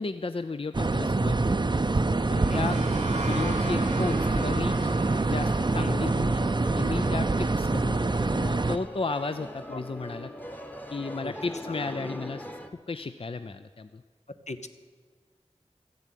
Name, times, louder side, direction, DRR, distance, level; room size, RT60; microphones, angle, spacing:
voice 1, 0.0-1.7 2.3-2.8 3.2-4.9 5.3-6.4 6.8-10.3 10.9-12.5 12.9-14.0, left 3 dB, 50° left, 10 dB, 0.5 m, -34 dB
sound 1, 0.7-8.8, right 3 dB, 40° right, 0.5 m, -25 dB
sound 2, 2.0-9.5, right 2 dB, 80° right, 1.0 m, -42 dB
voice 2, 2.5-2.6 5.8-6.0 9.7-9.8 11.2-11.3 11.7-11.9 14.5-14.7, left 3 dB, 75° left, 9 dB, 0.8 m, -39 dB
sound 3, 2.5-12.7, equal, 15° left, 1.1 m, -41 dB
13.5 x 7.9 x 9.1 m, 1.5 s
wide cardioid pair, 50°, 12 cm